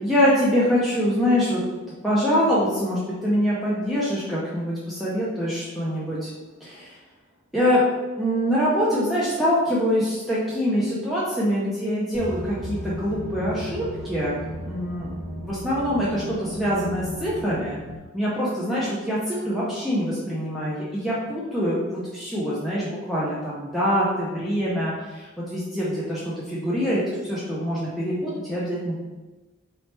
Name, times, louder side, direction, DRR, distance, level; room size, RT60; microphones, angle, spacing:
voice 1, 0.0-1.6 2.0-6.3 6.6-7.0 7.5-7.8 8.2-15.1 15.4-17.8 18.1-29.0, equal, ahead, -9 dB, 0.5 m, -24 dB
sound 1, 12.1-18.0, equal, 45° right, 1.2 m, -36 dB
4.1 x 3.1 x 3.2 m, 1.2 s
head